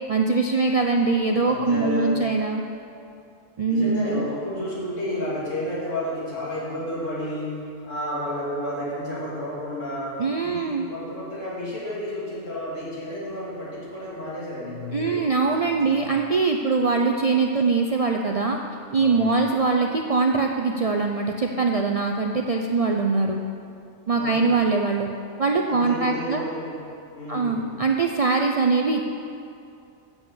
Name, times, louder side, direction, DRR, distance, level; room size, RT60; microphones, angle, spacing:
voice 1, 0.1-2.6 3.6-4.2 10.2-10.9 14.9-18.6 18.9-23.4 24.1-25.1 25.4-26.4 27.3-29.0, right 4 dB, 55° right, 2 dB, 0.4 m, -22 dB
voice 2, 1.4-2.4 3.7-16.1 18.9-19.3 24.1-24.5 25.6-26.9 27.1-27.7, left 1 dB, 85° left, -8 dB, 2.9 m, -31 dB
9.1 x 7.1 x 6.9 m, 2.5 s
omnidirectional pair, 1.3 m